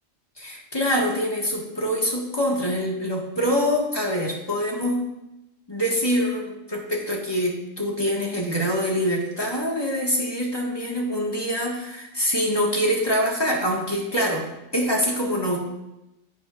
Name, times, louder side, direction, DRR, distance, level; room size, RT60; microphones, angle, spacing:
voice 1, 0.4-5.1 5.7-15.6, equal, 20° left, -2 dB, 1.8 m, -25 dB
11.0 x 10.0 x 2.6 m, 0.92 s
omnidirectional pair, 1.3 m